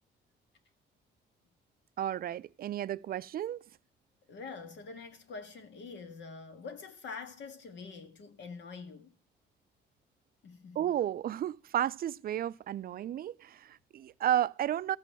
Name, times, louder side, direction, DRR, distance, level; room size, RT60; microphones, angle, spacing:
voice 1, 2.0-3.6 10.8-15.0, right 11 dB, 50° right, 0.4 m, -32 dB
voice 2, 4.3-9.1 10.4-10.9, left 4 dB, 65° left, 1.7 m, -45 dB
13.0 x 5.3 x 7.5 m
cardioid pair, 90°, 20 cm